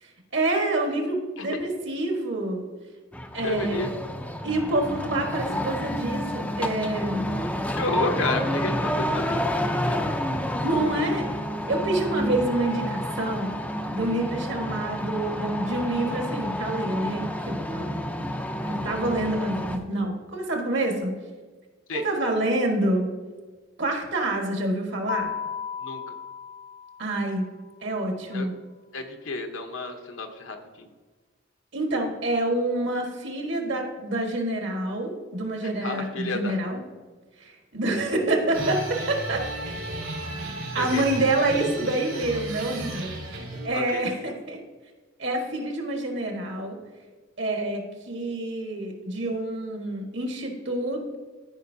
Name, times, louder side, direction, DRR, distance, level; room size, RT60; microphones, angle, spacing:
voice 1, 0.0-2.6 3.3-3.9 4.4-7.3 10.6-11.3 11.7-13.6 13.9-17.9 18.1-18.3 18.7-21.2 21.9-23.1 23.8-25.3 27.0-27.5 27.8-28.5 31.7-36.8 37.4-39.5 40.7-44.6 45.2-46.8 47.4-51.2, right 1 dB, 60° right, 2 dB, 1.5 m, -27 dB
sound 1, 3.1-19.8, equal, 5° left, 0.5 m, -29 dB
voice 2, 3.4-3.9 7.8-10.0 21.9-22.0 25.8-26.0 28.3-28.5 28.9-30.9 35.8-36.6 40.8-41.0 43.7-44.0, left 2 dB, 70° left, 5 dB, 1.0 m, -31 dB
Keyboard (musical), 25.1-27.6, left 8 dB, 40° left, 0.7 m, -35 dB
sound 2, 38.5-43.7, right 1 dB, 90° right, 2.4 m, -34 dB
13.5 x 5.4 x 2.7 m, 1.4 s
head